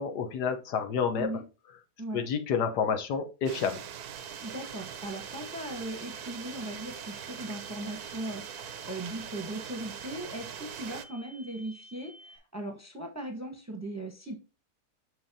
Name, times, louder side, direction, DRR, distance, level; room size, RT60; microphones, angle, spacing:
voice 1, 0.0-1.3 2.1-3.8, left 6 dB, 85° left, 7 dB, 1.5 m, -29 dB
sound 1, 3.5-11.1, right 9 dB, 75° right, 1.2 m, -42 dB
sound 2, 4.1-12.4, equal, 25° left, 1.1 m, -52 dB
voice 2, 4.4-14.3, right 1 dB, 10° right, 4 dB, 0.9 m, -38 dB
6.6 x 6.4 x 2.8 m, 0.31 s
omnidirectional pair, 1.7 m